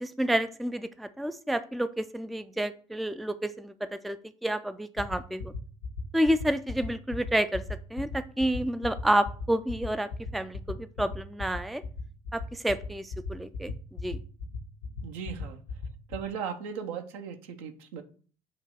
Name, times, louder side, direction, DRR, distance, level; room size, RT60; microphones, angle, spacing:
voice 1, 0.0-4.2 4.4-5.5 6.1-7.6 7.9-11.8 12.3-13.7 14.0-14.2, right 1 dB, ahead, 0.4 m, -29 dB
sound 1, 5.0-16.3, left 5 dB, 85° left, 1.4 m, -35 dB
voice 2, 15.0-15.6 16.1-18.0, right 7 dB, 70° right, 0.9 m, -37 dB
7.2 x 3.0 x 5.8 m
figure-of-eight pair, 60°, 18 cm